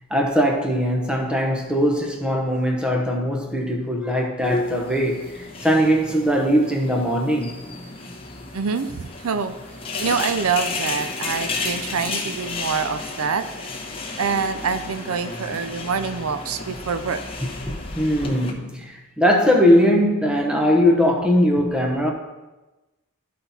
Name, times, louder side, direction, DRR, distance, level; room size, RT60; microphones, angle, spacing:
voice 1, 0.1-7.5 17.7-22.1, equal, 5° right, 1 dB, 0.9 m, -20 dB
sound 1, 4.4-18.5, left 3 dB, 25° left, 1.0 m, -32 dB
voice 2, 8.5-9.6 10.0-13.4 14.2-17.2, right 5 dB, 80° right, 10 dB, 0.5 m, -25 dB
12.5 x 4.3 x 4.1 m, 1.1 s
head